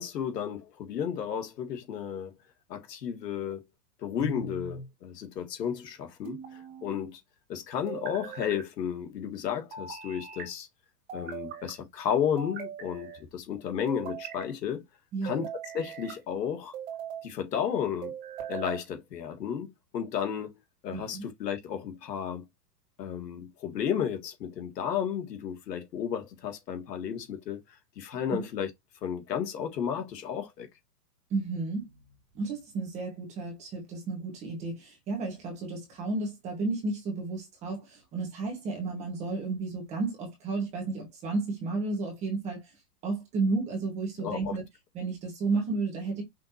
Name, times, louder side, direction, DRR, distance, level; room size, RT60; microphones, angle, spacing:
voice 1, 0.0-2.3 2.7-3.6 4.0-7.2 7.5-10.7 11.1-14.8 15.2-15.5 15.7-16.7 17.2-18.1 18.5-20.6 20.8-22.4 23.0-28.7 29.0-30.7 44.2-44.6, left 8 dB, 80° left, 1.8 m, -33 dB
sound 1, 4.2-4.9 6.2-7.0 7.9-8.6 9.7-10.5 11.1-11.7 12.4-13.2 13.9-14.5 15.2-16.2 16.7-17.3 18.0-18.8, right 6 dB, 40° right, 2.4 m, -40 dB
voice 2, 15.1-15.5 20.9-21.2 28.3-28.4 31.3-31.9 32.3-42.7 43.0-44.6 44.9-46.2, right 3 dB, 15° right, 1.2 m, -32 dB
5.6 x 3.1 x 2.8 m
supercardioid pair, 175°, 48 cm